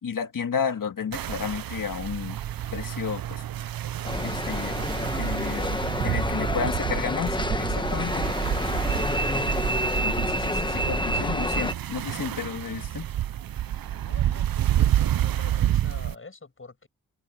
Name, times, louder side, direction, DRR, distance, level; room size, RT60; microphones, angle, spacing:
voice 1, 0.0-2.4 2.7-3.4 4.2-4.8 5.1-8.2 10.0-13.1, left 6 dB, 70° left, 1.9 m, -32 dB
sound 1, 1.1-16.1, right 12 dB, 80° right, 0.6 m, -29 dB
sound 2, 4.0-11.7, left 1 dB, 15° left, 1.3 m, -28 dB
voice 2, 6.2-6.8 11.9-13.0 14.0-16.9, left 3 dB, 35° left, 7.4 m, -47 dB
wide cardioid pair, 85°, 34 cm